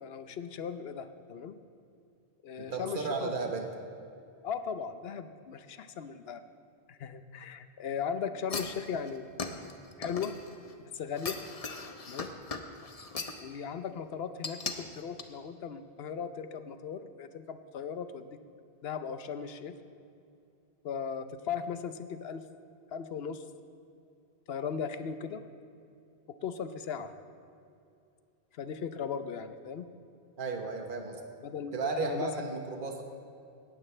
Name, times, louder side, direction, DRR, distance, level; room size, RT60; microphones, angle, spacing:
voice 1, 0.0-1.6 2.4-3.5 4.4-6.4 6.9-9.3 10.0-10.4 10.8-11.4 12.1-12.3 13.4-18.4 18.8-19.8 20.8-22.4 22.9-23.4 24.5-25.4 26.3-27.1 28.5-29.9 31.4-32.3, left 6 dB, 75° left, 10 dB, 1.0 m, -37 dB
voice 2, 2.6-3.7 30.4-31.2 31.7-33.0, right 3 dB, 55° right, 3 dB, 1.3 m, -34 dB
sound 1, 8.5-10.7 11.2-13.4 14.4-14.8 15.2-15.3, left 4 dB, 40° left, 0.9 m, -38 dB
18.5 x 14.5 x 3.3 m, 2.5 s
omnidirectional pair, 1.1 m